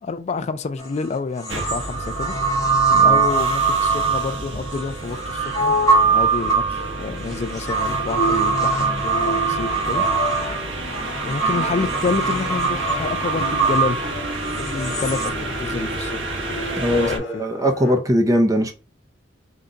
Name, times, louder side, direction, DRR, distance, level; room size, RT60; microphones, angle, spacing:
voice 1, 0.0-2.4 3.0-5.8 6.0-10.0 11.2-14.0 14.6-16.2 16.9-17.4, left 4 dB, 35° left, 0.3 m, -28 dB
sound 1, 0.8-0.9 1.4-15.3, right 5 dB, 20° left, 0.8 m, -22 dB
sound 2, 1.5-17.2, right 2 dB, 70° right, 1.1 m, -31 dB
voice 2, 2.9-3.2 16.8-18.7, equal, 20° right, 0.5 m, -20 dB
sound 3, 5.3-17.9, left 1 dB, 75° left, 0.8 m, -32 dB
3.8 x 2.2 x 3.8 m
head